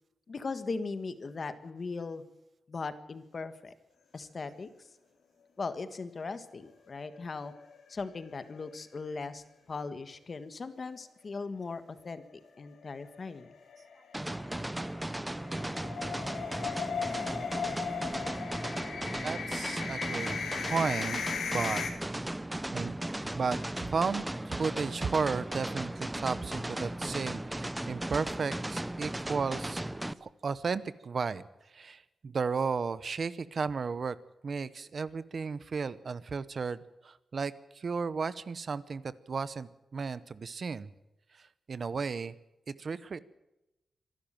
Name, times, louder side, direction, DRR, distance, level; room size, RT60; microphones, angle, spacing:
voice 1, 0.3-2.2 2.7-3.7 4.1-4.7 5.6-7.5 7.9-12.2 12.6-13.5, left 4 dB, 40° left, 11 dB, 1.6 m, -38 dB
sound 1, 7.0-7.9 8.2-8.3 8.6-8.7 12.9-21.9, left 6 dB, 80° left, 3.3 m, -37 dB
sound 2, 14.1-30.1, right 1 dB, 10° right, 0.6 m, -36 dB
voice 2, 19.2-20.4 20.6-21.2 21.5-21.8 22.7-22.9 23.3-29.8 30.2-34.2 34.4-40.9 41.3-42.3 42.7-43.2, right 5 dB, 45° right, 16 dB, 0.8 m, -34 dB
25.0 x 12.0 x 8.9 m, 0.94 s
wide cardioid pair, 155°, 0 cm